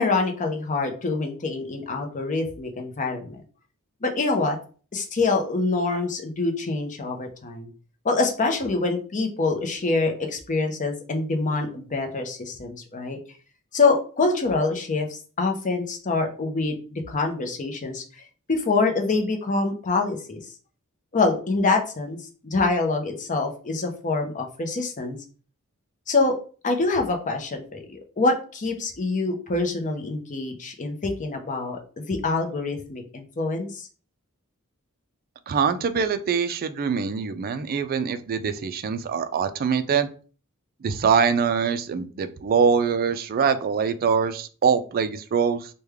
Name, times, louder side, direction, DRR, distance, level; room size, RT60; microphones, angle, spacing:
voice 1, 0.0-3.4 4.0-4.6 4.9-7.7 8.0-13.2 13.7-18.2 18.5-20.4 21.1-22.2 22.4-25.2 26.1-26.4 26.6-33.9, left 3 dB, 35° left, 4 dB, 0.6 m, -25 dB
voice 2, 35.5-40.1 40.8-45.7, right 6 dB, 40° right, 9 dB, 0.3 m, -23 dB
3.2 x 2.2 x 3.4 m, 0.39 s
head